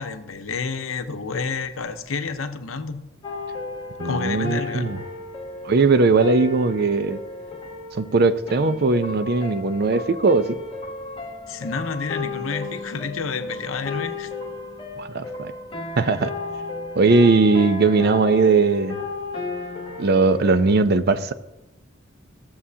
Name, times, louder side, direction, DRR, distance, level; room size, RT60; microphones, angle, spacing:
voice 1, 0.0-3.0 4.0-4.9 11.5-14.3, left 4 dB, 90° left, 0.8 m, -29 dB
sound 1, 3.2-20.8, left 3 dB, 25° left, 1.1 m, -34 dB
voice 2, 4.0-5.0 5.6-7.2 7.9-10.6 15.0-15.5 16.0-16.3 17.0-19.0 20.0-21.3, right 3 dB, 50° right, 0.5 m, -19 dB
15.5 x 7.1 x 2.8 m
head